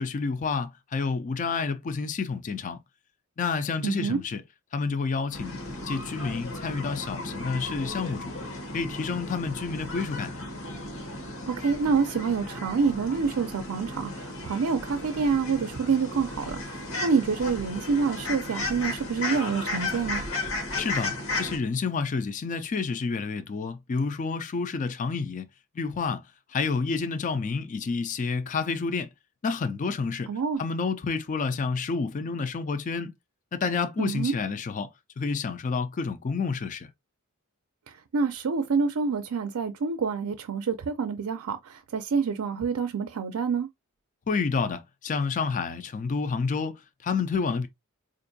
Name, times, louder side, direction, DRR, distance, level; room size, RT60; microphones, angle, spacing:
voice 1, 0.0-2.8 3.4-4.4 4.7-8.4 8.7-10.4 20.8-25.5 25.8-26.2 26.5-29.1 29.4-30.3 30.6-33.1 33.5-36.9 44.3-47.7, left 4 dB, 35° left, 0.4 m, -29 dB
voice 2, 3.8-4.2 11.5-20.2 30.3-30.6 34.0-34.3 37.9-43.7, right 5 dB, 75° right, 0.5 m, -27 dB
sound 1, 5.3-21.6, left 2 dB, 65° left, 1.1 m, -35 dB
4.4 x 2.5 x 2.6 m
head